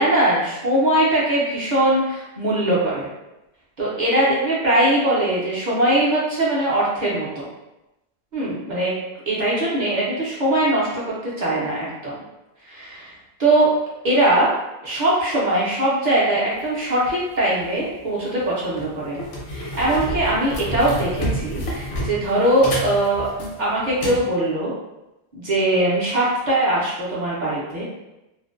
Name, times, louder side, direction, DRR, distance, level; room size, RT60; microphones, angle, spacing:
voice 1, 0.0-3.1 3.8-7.5 8.3-8.9 9.3-10.9 11.2-12.2 12.6-13.1 13.4-13.7 14.0-14.5 14.8-19.2 19.5-23.3 23.6-24.7 25.3-27.8, right 1 dB, 50° right, -7 dB, 0.6 m, -21 dB
sound 1, 17.6-17.8 18.4-18.5 18.8-24.2, equal, 80° left, 0.9 m, -29 dB
2.5 x 2.1 x 2.4 m, 0.94 s
omnidirectional pair, 1.1 m